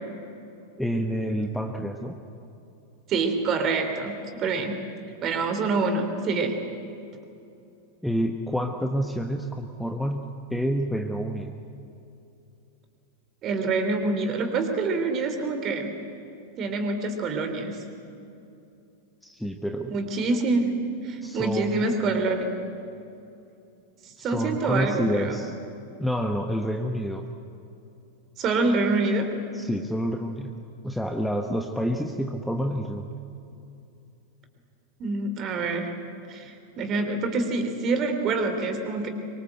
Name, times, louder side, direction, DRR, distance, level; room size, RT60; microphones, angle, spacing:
voice 1, 0.8-2.1 8.0-11.5 19.2-19.9 21.2-21.8 24.2-25.5 26.0-27.2 29.5-30.5 30.8-33.1, equal, ahead, 4 dB, 1.3 m, -28 dB
voice 2, 3.1-4.8 5.2-6.6 13.4-15.9 16.6-17.8 19.9-20.7 21.0-22.5 24.0-25.4 28.4-29.3 35.0-35.9 36.3-39.1, right 3 dB, 30° right, 6 dB, 3.6 m, -26 dB
24.5 x 24.0 x 7.9 m, 2.7 s
figure-of-eight pair, 90°, 0 cm